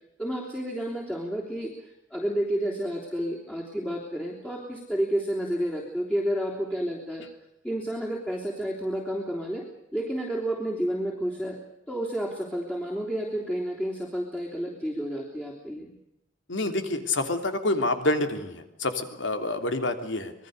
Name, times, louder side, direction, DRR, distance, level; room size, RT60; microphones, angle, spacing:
voice 1, 0.2-1.7 2.1-7.3 7.6-9.7 9.9-11.6 11.9-16.0, right 1 dB, 5° left, -3 dB, 3.4 m, -30 dB
voice 2, 16.5-20.3, left 2 dB, 75° left, 7 dB, 3.1 m, -27 dB
26.5 x 21.0 x 6.6 m, 0.86 s
head